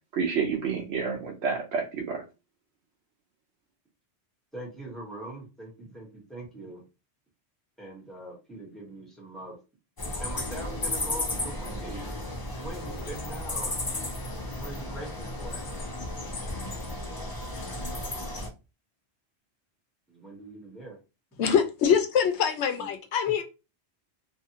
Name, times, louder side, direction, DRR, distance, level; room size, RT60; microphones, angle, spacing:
voice 1, 0.1-2.2, right 6 dB, 85° right, 0.9 m, -29 dB
voice 2, 4.5-6.8 7.8-9.6 10.2-12.1 12.6-13.8 14.6-15.6 20.1-21.0 22.8-22.9, right 1 dB, ahead, 1.0 m, -42 dB
sound 1, 10.0-18.5, left 1 dB, 30° left, 0.5 m, -34 dB
voice 3, 21.4-23.4, left 7 dB, 85° left, 0.9 m, -24 dB
2.6 x 2.4 x 2.8 m
omnidirectional pair, 1.1 m